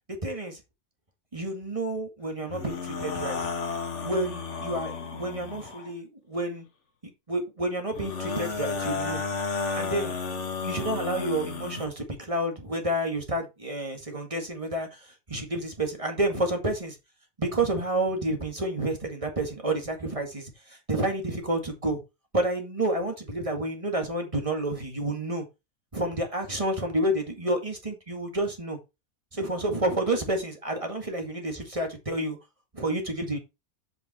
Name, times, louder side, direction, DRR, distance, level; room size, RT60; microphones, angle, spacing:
voice 1, 0.1-0.6 1.3-3.4 4.0-6.6 7.3-9.2 9.7-10.2 10.6-17.0 17.4-22.0 22.3-25.5 25.9-28.8 29.3-32.4 32.7-33.4, right 1 dB, 20° right, 1.9 m, -29 dB
sound 1, 2.5-5.9 7.9-11.9, left 4 dB, 50° left, 1.5 m, -33 dB
7.8 x 5.4 x 4.2 m
omnidirectional pair, 1.7 m